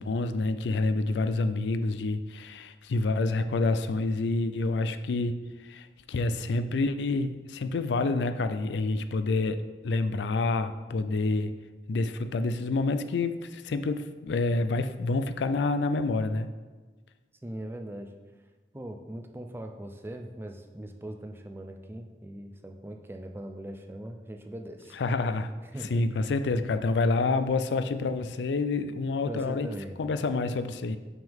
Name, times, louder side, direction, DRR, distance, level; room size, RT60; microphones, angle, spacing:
voice 1, 0.0-9.6 9.8-11.5 11.9-16.5 25.0-25.5 25.9-29.7 30.0-31.0, left 3 dB, 80° left, 10 dB, 0.4 m, -28 dB
voice 2, 17.4-18.1 18.7-25.0 25.6-26.0 29.3-30.0, right 1 dB, 15° right, 4 dB, 0.4 m, -40 dB
5.9 x 5.5 x 3.5 m, 1.3 s
head